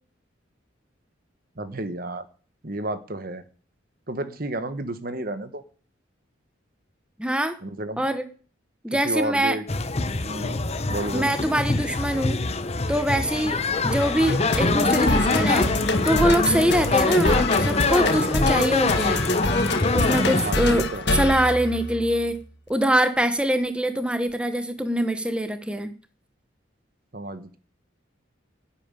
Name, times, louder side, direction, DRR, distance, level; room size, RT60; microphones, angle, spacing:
voice 1, 1.6-2.2 2.6-3.4 4.1-5.6 7.6-8.1 8.9-9.6 10.2-11.4 20.4-21.2 27.1-27.6, right 1 dB, 45° right, 11 dB, 1.3 m, -31 dB
voice 2, 7.2-7.6 8.0-8.2 8.8-9.6 11.1-12.4 12.9-15.7 16.0-19.2 19.9-20.8 21.1-22.4 22.7-25.9, right 1 dB, 5° right, 9 dB, 1.1 m, -23 dB
sound 1, 9.7-20.5, left 3 dB, 30° left, 0.9 m, -24 dB
sound 2, 13.7-22.3, left 2 dB, 55° left, 1.7 m, -27 dB
11.0 x 8.9 x 9.1 m, 0.42 s
head